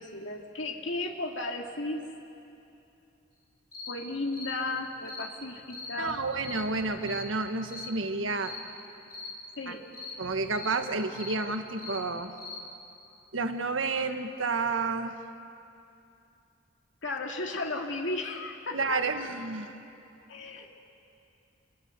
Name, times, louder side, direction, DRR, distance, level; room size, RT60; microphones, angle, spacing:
voice 1, 0.0-2.0 3.9-6.2 9.5-9.8 17.0-19.0 20.3-20.7, left 2 dB, 75° left, 1 dB, 2.2 m, -34 dB
sound 1, 3.7-3.9 4.3-4.5 5.0-5.3 5.7-5.9 6.4-6.6 7.0-7.3 7.7-7.9 8.4-8.6 9.1-9.3 9.9-10.2 10.5-10.8 11.1-11.4 11.8-12.0 12.4-12.6, left 4 dB, 45° left, 4.1 m, -41 dB
voice 2, 6.0-8.6 9.7-9.8 10.2-12.3 13.3-15.2 18.7-19.7, right 3 dB, 90° right, 7 dB, 1.5 m, -30 dB
29.0 x 22.5 x 8.3 m, 2.7 s
head